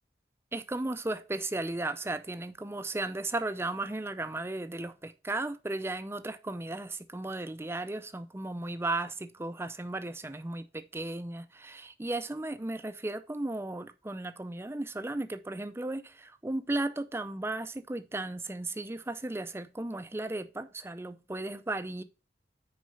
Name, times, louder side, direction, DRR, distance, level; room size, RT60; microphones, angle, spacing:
voice 1, 0.5-22.0, right 2 dB, 15° right, 0.5 m, -35 dB
6.2 x 4.8 x 5.5 m
head